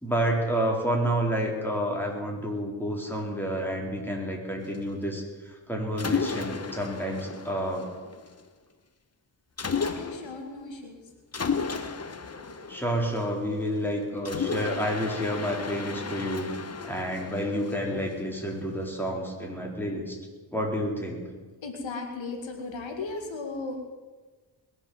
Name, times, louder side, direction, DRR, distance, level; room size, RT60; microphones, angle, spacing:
voice 1, 0.0-5.2 5.5-7.9 12.7-16.5 16.8-20.2 20.5-21.3, equal, 5° left, 0 dB, 4.4 m, -29 dB
Mechanisms, 6.0-8.4 9.6-10.4 11.3-13.7 14.3-18.4, left 5 dB, 35° left, 1.2 m, -33 dB
voice 2, 9.8-11.0 12.1-12.4 21.6-23.8, left 3 dB, 80° left, 4 dB, 2.1 m, -36 dB
21.0 x 7.4 x 7.4 m, 1.3 s
cardioid pair, 55°, 45 cm